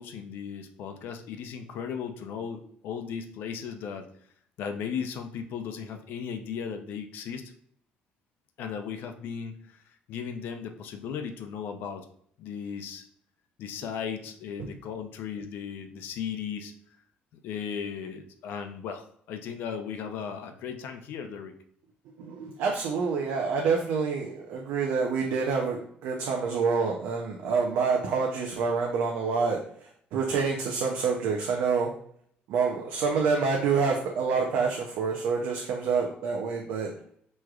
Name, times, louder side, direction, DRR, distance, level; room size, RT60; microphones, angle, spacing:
voice 1, 0.0-4.1 4.6-7.4 8.6-9.8 10.1-12.1 12.4-13.1 13.6-16.7 17.4-21.6, left 7 dB, 70° left, 6 dB, 0.6 m, -36 dB
voice 2, 22.2-31.9 32.5-36.9, right 5 dB, 80° right, 0 dB, 0.6 m, -27 dB
6.1 x 3.1 x 2.3 m, 0.64 s
cardioid pair, 165°, 4 cm